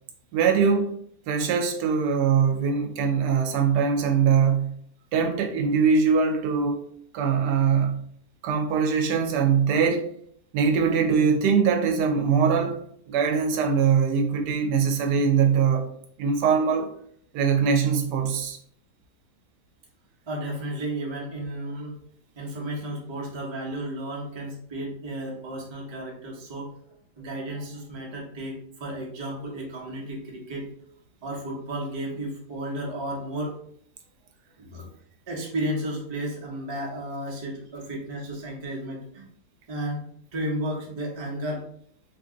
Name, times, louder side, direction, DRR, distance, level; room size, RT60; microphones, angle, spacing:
voice 1, 0.3-0.9 1.3-4.7 5.1-6.9 7.1-8.0 8.4-10.1 10.5-15.9 16.2-16.9 17.3-18.6, right 6 dB, 90° right, 1.2 m, -22 dB
voice 2, 20.3-21.9 22.4-26.8 27.2-30.7 31.2-33.6 34.6-34.9 35.3-39.3 39.7-41.7, right 1 dB, 30° right, 0.5 m, -33 dB
2.8 x 2.6 x 3.7 m
omnidirectional pair, 1.7 m